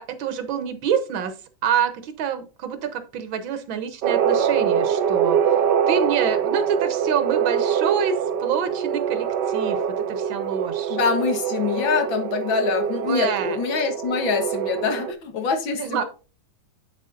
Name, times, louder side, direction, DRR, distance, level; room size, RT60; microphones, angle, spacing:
voice 1, 0.0-1.3 1.6-5.4 5.9-9.8 10.1-11.0 13.1-13.6 15.7-16.0, right 7 dB, 90° right, 8 dB, 1.8 m, -27 dB
sound 1, 4.0-15.1, right 8 dB, 70° right, 1.4 m, -24 dB
voice 2, 10.9-16.0, left 5 dB, 85° left, 6 dB, 2.2 m, -24 dB
8.6 x 8.4 x 2.6 m, 0.34 s
omnidirectional pair, 2.1 m